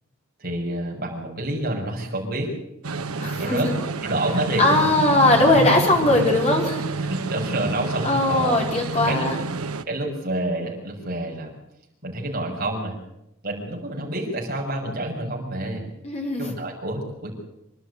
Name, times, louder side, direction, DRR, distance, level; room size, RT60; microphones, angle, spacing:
voice 1, 0.4-2.5 3.3-3.7 4.0-4.7 5.6-5.7 6.0-6.1 7.0-8.6 9.1-9.3 9.9-11.5 12.0-12.9 13.4-15.8 16.4-17.3, right 1 dB, 45° right, 0 dB, 6.1 m, -28 dB
sound 1, 2.8-9.8, right 3 dB, 80° right, 0.9 m, -29 dB
voice 2, 3.2-3.7 4.6-6.9 8.0-9.4 16.0-16.4, left 2 dB, 30° left, 1 dB, 4.3 m, -20 dB
26.0 x 12.0 x 9.7 m, 0.85 s
head